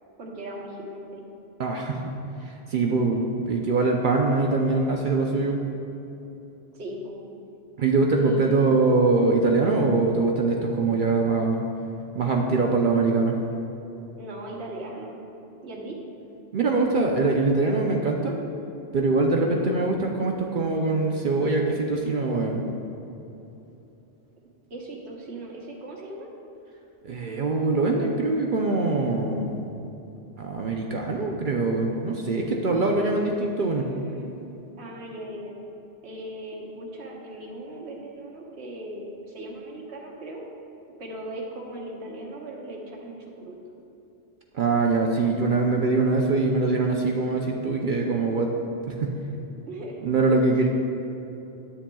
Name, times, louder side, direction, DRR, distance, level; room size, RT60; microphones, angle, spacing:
voice 1, 0.2-1.3 6.7-7.2 8.2-8.7 14.2-15.2 15.6-16.0 19.4-19.7 24.7-26.3 33.6-34.3 34.8-35.6 36.0-40.4 41.0-43.6 49.7-50.0 50.6-50.7, right 1 dB, 85° right, -1 dB, 1.3 m, -38 dB
voice 2, 1.6-2.1 2.7-5.6 7.8-11.6 12.1-13.4 16.5-18.4 18.9-22.6 27.0-29.6 30.4-33.9 44.5-48.5 48.9-49.1 50.0-50.7, right 3 dB, 55° right, 0 dB, 0.7 m, -23 dB
9.9 x 8.7 x 2.3 m, 2.9 s
omnidirectional pair, 1.1 m